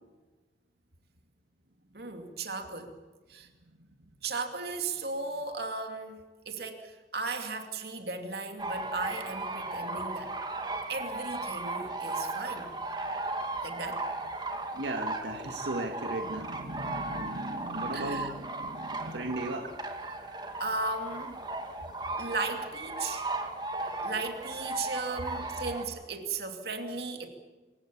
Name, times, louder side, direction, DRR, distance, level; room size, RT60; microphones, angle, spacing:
voice 1, 1.9-2.9 3.3-3.5 4.2-10.3 10.9-12.7 13.6-14.0 17.9-18.3 20.6-21.4 22.2-23.3 24.0-27.3, right 3 dB, 65° right, 5 dB, 2.7 m, -36 dB
sound 1, 8.6-25.8, right 2 dB, 25° right, 2.1 m, -36 dB
voice 2, 14.7-19.7, right 1 dB, 90° right, 4 dB, 1.8 m, -36 dB
26.5 x 16.0 x 8.5 m, 1.3 s
head